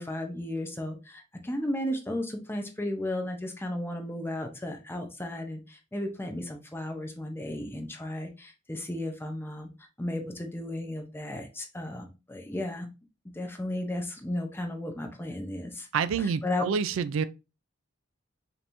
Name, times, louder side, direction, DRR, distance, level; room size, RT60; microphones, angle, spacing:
voice 1, 0.0-9.7 10.0-12.9 13.3-15.9 16.2-16.7, left 1 dB, 10° left, 0.6 m, -34 dB
voice 2, 15.9-17.2, right 6 dB, 70° right, 0.3 m, -27 dB
5.2 x 2.9 x 2.6 m
head